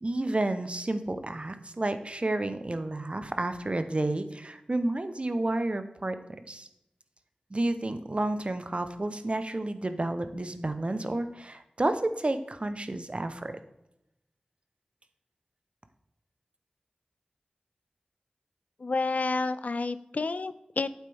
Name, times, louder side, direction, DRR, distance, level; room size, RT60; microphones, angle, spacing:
voice 1, 0.0-6.2 6.5-6.7 7.5-13.5, right 2 dB, 45° right, 9 dB, 0.8 m, -30 dB
voice 2, 18.8-20.9, left 3 dB, 65° left, 14 dB, 0.4 m, -30 dB
9.0 x 7.4 x 3.5 m, 0.86 s
cardioid pair, 40°, 3 cm